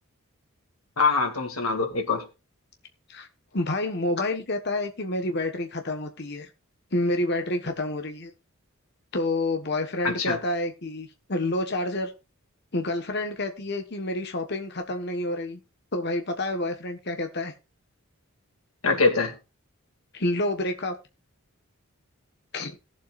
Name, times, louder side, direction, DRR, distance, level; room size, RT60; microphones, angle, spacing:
voice 1, 1.0-2.2 10.0-10.4 18.8-19.3, left 4 dB, 85° left, 2.4 m, -23 dB
voice 2, 3.5-6.5 6.9-8.3 9.1-12.1 12.7-15.6 15.9-17.5 20.1-20.9 22.5-22.7, left 1 dB, 50° left, 1.3 m, -28 dB
18.0 x 7.5 x 2.5 m
head